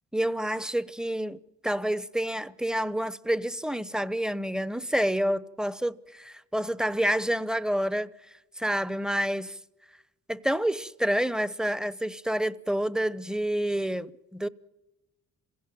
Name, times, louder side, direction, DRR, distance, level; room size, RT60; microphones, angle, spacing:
voice 1, 0.1-8.1 8.6-9.6 10.3-14.5, equal, ahead, 0.8 m, -28 dB
27.0 x 16.5 x 9.2 m
cardioid pair, 90°, 30 cm